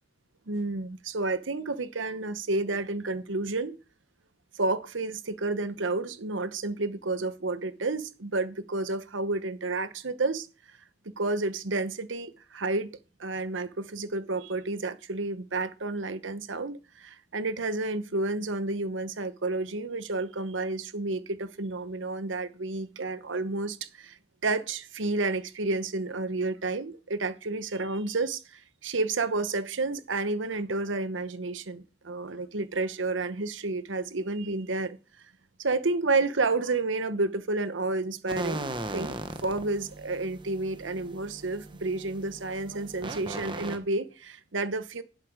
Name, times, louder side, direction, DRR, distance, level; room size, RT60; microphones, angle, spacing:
voice 1, 0.5-3.8 4.5-10.5 11.2-12.9 13.2-24.2 24.4-35.0 35.6-45.0, right 3 dB, 90° right, 1.0 m, -30 dB
sound 1, 38.3-43.8, right 2 dB, 25° right, 1.1 m, -38 dB
11.5 x 7.9 x 5.0 m
head